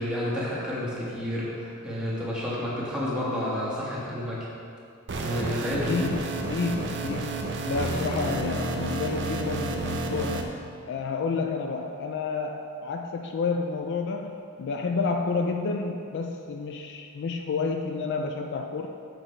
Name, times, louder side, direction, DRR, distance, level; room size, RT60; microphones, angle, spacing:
voice 1, 0.0-4.4 5.2-6.1, left 1 dB, 5° right, -8 dB, 1.4 m, -30 dB
sound 1, 5.1-10.4, right 3 dB, 50° right, 0.6 m, -30 dB
voice 2, 5.9-18.9, left 4 dB, 50° left, 4 dB, 0.3 m, -30 dB
7.6 x 5.9 x 3.2 m, 2.5 s
head